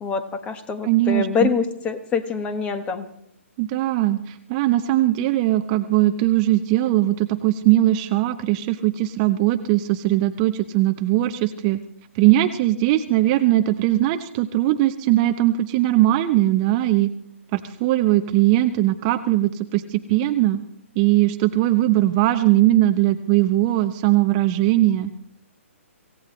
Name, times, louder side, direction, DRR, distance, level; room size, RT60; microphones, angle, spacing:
voice 1, 0.0-3.1, left 6 dB, 15° left, 10 dB, 1.3 m, -25 dB
voice 2, 0.8-1.5 3.6-11.8 12.1-17.1 17.5-20.6 21.0-25.1, right 15 dB, 30° right, 9 dB, 0.8 m, -20 dB
26.0 x 16.5 x 3.2 m, 0.71 s
figure-of-eight pair, 135°, 7 cm